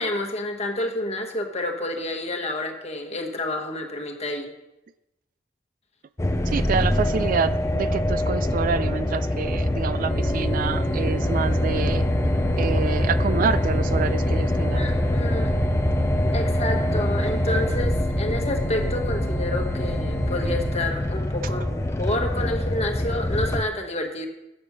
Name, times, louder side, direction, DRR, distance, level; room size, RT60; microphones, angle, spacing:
voice 1, 0.0-4.5 14.8-15.5 16.3-24.3, left 1 dB, 35° left, 3 dB, 1.3 m, -29 dB
sound 1, 6.2-23.6, left 1 dB, 15° left, 0.5 m, -24 dB
voice 2, 6.4-12.0 12.6-14.8, right 6 dB, 50° right, 15 dB, 0.3 m, -27 dB
sound 2, 10.1-20.9, right 2 dB, 65° right, 1.4 m, -33 dB
8.5 x 7.1 x 6.1 m, 0.92 s
head